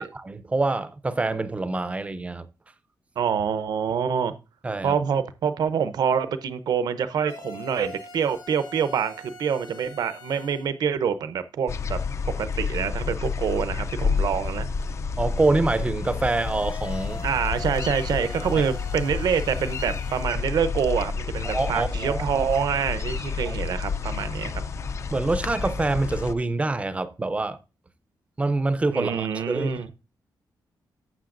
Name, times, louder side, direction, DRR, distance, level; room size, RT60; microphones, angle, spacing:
voice 1, 0.0-2.5 4.6-5.0 15.2-17.2 18.6-18.7 21.4-22.2 23.4-23.6 25.1-27.6 28.4-29.9, right 2 dB, 15° right, 0.5 m, -26 dB
voice 2, 3.2-4.3 4.8-12.0 12.4-14.7 17.2-24.5 28.9-29.9, right 7 dB, 65° right, 0.7 m, -26 dB
sound 1, 7.3-10.7 16.1-20.4, left 2 dB, 80° left, 2.4 m, -44 dB
sound 2, 11.7-26.3, left 5 dB, 40° left, 0.5 m, -30 dB
12.0 x 7.7 x 2.5 m
wide cardioid pair, 170°, 7 cm